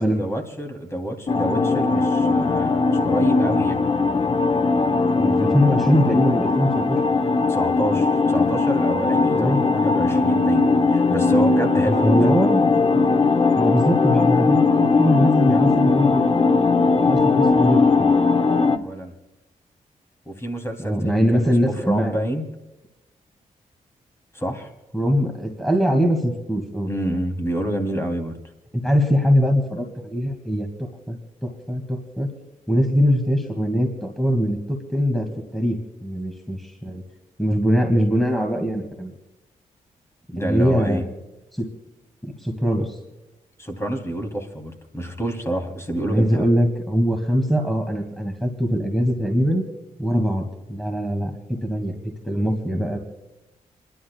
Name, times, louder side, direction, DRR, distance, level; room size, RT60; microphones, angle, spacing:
voice 1, 0.0-3.8 7.5-10.6 10.9-12.1 18.7-19.1 20.2-22.4 24.3-24.7 26.9-28.4 40.3-41.0 43.6-46.4, right 1 dB, 20° left, 4 dB, 3.3 m, -28 dB
sound 1, 1.3-18.8, left 4 dB, 40° left, 1.1 m, -19 dB
voice 2, 5.2-7.0 9.3-9.6 12.0-12.7 13.6-16.7 17.0-18.1 20.8-22.2 24.9-26.9 28.7-32.3 32.7-37.0 37.4-39.1 40.4-41.1 41.5-41.7 42.2-43.0 46.0-49.7 50.0-53.0, equal, ahead, 3 dB, 2.3 m, -22 dB
29.5 x 11.5 x 2.4 m, 1.0 s
cardioid pair, 65°, 14 cm